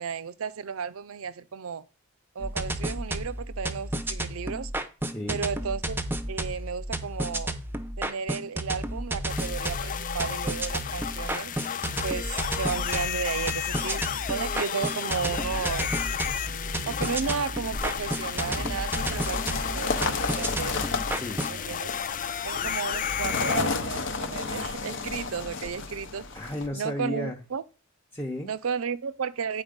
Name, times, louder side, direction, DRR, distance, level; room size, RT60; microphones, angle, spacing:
voice 1, 0.0-1.9 2.3-4.7 5.3-6.0 6.3-7.5 8.0-11.5 12.0-16.0 16.9-20.8 21.5-21.9 22.4-26.3 26.7-27.6 28.4-29.6, right 6 dB, 75° right, 0.5 m, -33 dB
sound 1, 2.4-21.6, right 1 dB, 10° right, 0.6 m, -32 dB
voice 2, 5.1-5.4 21.1-21.5 22.5-22.7 26.3-27.4 28.1-28.5, left 1 dB, 10° left, 0.9 m, -34 dB
sound 2, 9.3-23.6, left 8 dB, 40° left, 0.4 m, -33 dB
sound 3, 17.8-26.7, left 4 dB, 60° left, 0.8 m, -33 dB
8.8 x 4.7 x 5.2 m
head